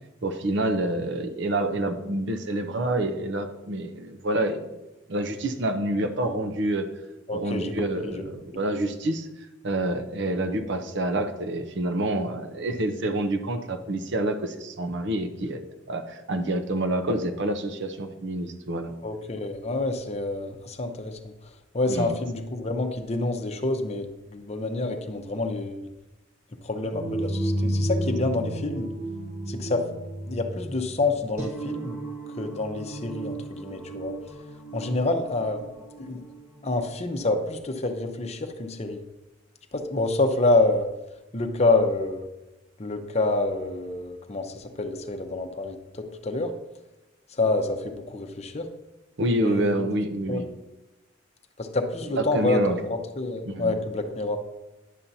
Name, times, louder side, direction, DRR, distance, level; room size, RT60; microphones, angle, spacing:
voice 1, 0.2-4.7 5.1-6.9 7.3-9.3 9.6-15.6 15.9-18.9 21.9-22.1 49.2-50.4 52.1-52.8 53.5-53.8, right 1 dB, 65° right, 7 dB, 0.7 m, -27 dB
voice 2, 7.3-8.2 8.5-8.6 19.0-21.3 21.7-25.9 26.6-28.9 29.5-29.9 30.2-32.0 32.3-34.2 34.7-35.7 36.0-36.2 36.6-39.0 39.7-40.9 41.3-42.3 42.8-46.5 47.3-48.7 49.4-49.8 50.3-50.4 51.6-54.4, left 2 dB, 35° left, 5 dB, 0.7 m, -27 dB
sound 1, 26.9-36.8, right 1 dB, 15° right, 1.3 m, -33 dB
10.0 x 7.2 x 2.7 m, 1.0 s
head